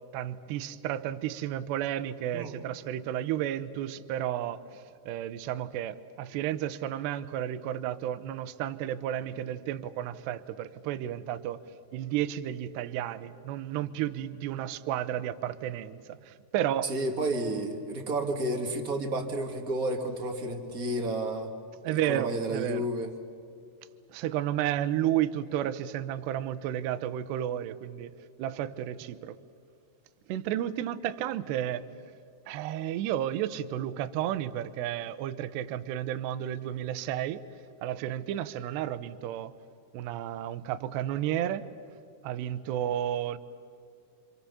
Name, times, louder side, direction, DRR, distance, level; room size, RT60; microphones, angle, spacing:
voice 1, 0.1-11.6 11.9-16.9 21.8-22.9 24.1-28.1 28.4-29.4 30.3-31.9 32.5-37.4 37.8-39.5 39.9-41.7 42.2-43.4, right 11 dB, 75° right, 12 dB, 2.9 m, -32 dB
voice 2, 16.8-21.5 21.9-23.1, right 1 dB, 35° right, 3 dB, 1.5 m, -31 dB
29.0 x 27.5 x 7.1 m, 2.5 s
omnidirectional pair, 5.2 m